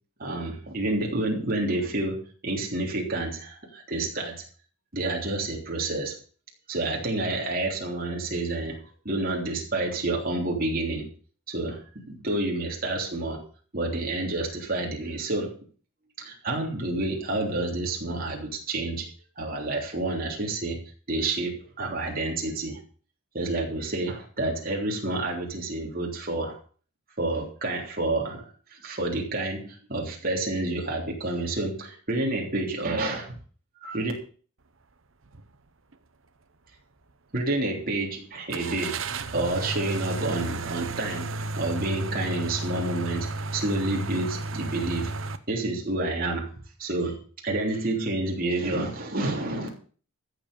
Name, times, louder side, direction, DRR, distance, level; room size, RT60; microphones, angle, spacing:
voice 1, 0.2-4.4 4.9-6.1 6.7-8.8 9.0-11.1 11.5-13.4 13.7-15.5 16.2-20.8 21.1-22.8 23.3-26.6 27.2-33.4 33.8-34.1 37.3-39.0 39.3-45.1 45.5-46.5 46.8-49.7, right 2 dB, 45° right, 0 dB, 3.4 m, -29 dB
sound 1, 35.2-35.5 35.9-36.0 38.5-45.4, right 3 dB, 65° right, 1.0 m, -33 dB
14.5 x 7.7 x 6.8 m, 0.42 s
head